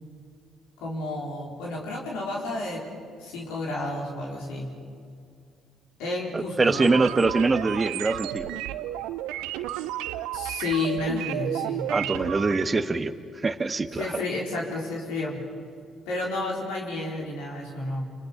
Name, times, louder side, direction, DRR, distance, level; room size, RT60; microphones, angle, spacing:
voice 1, 0.8-2.9 3.2-4.8 6.0-7.0 10.3-11.9 13.9-15.5 16.1-18.1, left 2 dB, 75° left, -3 dB, 4.3 m, -31 dB
voice 2, 6.3-8.5 11.9-13.1 13.4-14.2, right 3 dB, 30° right, 11 dB, 1.3 m, -24 dB
sound 1, 6.7-12.6, right 13 dB, 75° right, 0.8 m, -32 dB
29.0 x 28.0 x 5.4 m, 2.3 s
hypercardioid pair, 45°, 0 cm